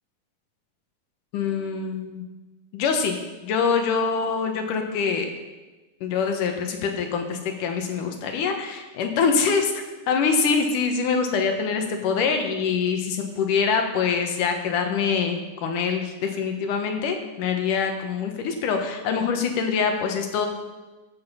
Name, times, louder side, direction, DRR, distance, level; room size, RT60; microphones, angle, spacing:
voice 1, 1.3-2.2 2.7-3.2 3.4-5.3 6.0-9.7 10.1-20.5, left 5 dB, 90° left, 4 dB, 2.8 m, -24 dB
14.0 x 7.2 x 5.6 m, 1.2 s
omnidirectional pair, 3.6 m